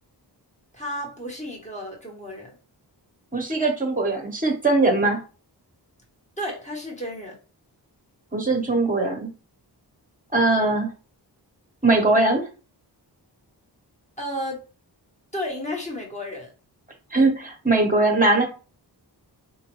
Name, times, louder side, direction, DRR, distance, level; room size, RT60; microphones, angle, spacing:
voice 1, 0.7-2.5 6.4-7.4 14.2-14.6 15.3-16.5, left 1 dB, 15° left, 1.1 m, -32 dB
voice 2, 3.3-5.2 8.3-9.3 10.3-10.9 11.8-12.5 17.1-18.4, right 2 dB, 20° right, 1.0 m, -20 dB
3.9 x 2.5 x 3.0 m
wide cardioid pair, 130°, 42 cm